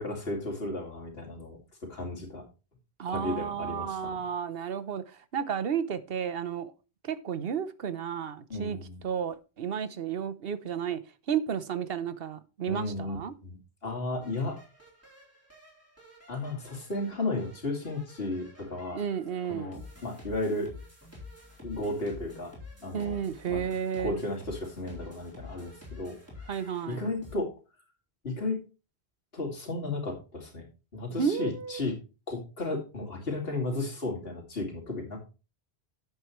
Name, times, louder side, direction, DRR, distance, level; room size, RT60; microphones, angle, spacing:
voice 1, 0.0-2.4 3.1-4.2 8.5-9.0 12.7-13.2 13.4-14.6 16.3-19.0 19.5-20.7 21.6-22.5 22.8-23.6 24.0-26.2 26.9-27.5 28.2-28.6 29.3-30.6 30.9-32.0 32.3-35.2, left 2 dB, 65° left, 2.6 m, -34 dB
voice 2, 3.0-6.7 7.0-8.8 9.0-11.0 11.3-13.3 18.9-19.9 22.9-24.2 26.5-27.0 31.1-31.8, right 7 dB, 65° right, 1.0 m, -32 dB
sound 1, 14.2-27.3, left 3 dB, 15° right, 4.0 m, -49 dB
10.5 x 8.0 x 3.1 m
omnidirectional pair, 1.1 m